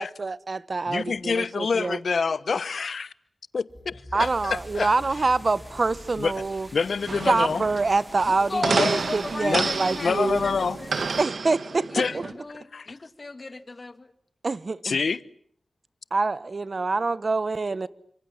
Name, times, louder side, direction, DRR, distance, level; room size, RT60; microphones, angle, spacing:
voice 1, 0.0-2.0 4.1-6.7 7.3-10.4 11.2-12.2 14.4-15.0 16.1-17.9, right 3 dB, 50° right, 1.1 m, -26 dB
voice 2, 0.9-3.1 3.5-4.9 6.2-6.3 6.7-7.6 8.7-8.9 9.4-10.8 11.9-12.1 12.7-12.9 14.8-15.2, left 5 dB, 80° left, 1.1 m, -27 dB
sound 1, 3.7-8.6, left 1 dB, 10° left, 6.3 m, -47 dB
sound 2, 4.2-11.3, equal, 10° right, 5.1 m, -46 dB
sound 3, 7.1-12.3, right 4 dB, 75° right, 2.1 m, -30 dB
voice 3, 8.2-11.1 12.1-14.1, left 3 dB, 40° left, 2.3 m, -35 dB
29.0 x 25.5 x 7.3 m
wide cardioid pair, 65°, 0 cm